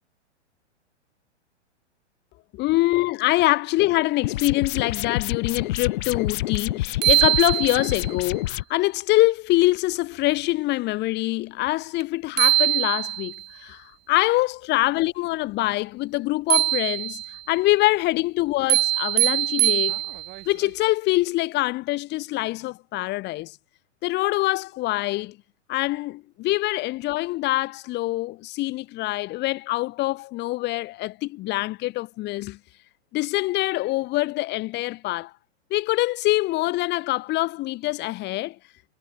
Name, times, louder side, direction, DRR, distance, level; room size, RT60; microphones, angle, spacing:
voice 1, 2.5-13.3 13.6-17.2 17.5-20.0 20.5-23.6 24.0-25.4 25.7-32.6 33.1-35.3 35.7-38.6, left 19 dB, 30° left, 7.1 m, -24 dB
sound 1, 4.2-8.6, left 16 dB, 45° left, 5.7 m, -28 dB
sound 2, 6.6-6.7 7.0-8.1 12.0-12.1 12.4-13.4 16.5-17.4 18.7-20.4, right 18 dB, 30° right, 6.7 m, -22 dB
figure-of-eight pair, 110°, 36 cm